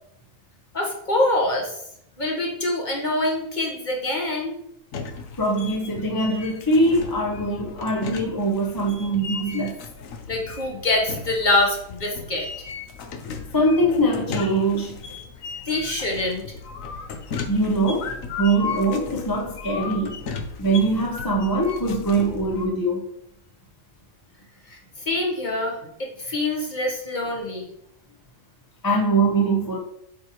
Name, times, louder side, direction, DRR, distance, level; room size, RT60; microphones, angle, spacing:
voice 1, 0.7-1.7 2.2-4.6 10.3-12.5 15.7-16.4 25.1-27.7, left 2 dB, 35° left, 1.3 m, -25 dB
sound 1, 4.9-22.7, left 5 dB, 75° left, 1.2 m, -35 dB
voice 2, 5.4-9.8 13.5-15.0 17.5-20.2 20.6-23.0 28.8-29.8, right 2 dB, 20° left, 0.7 m, -22 dB
7.6 x 4.5 x 3.1 m
omnidirectional pair, 1.4 m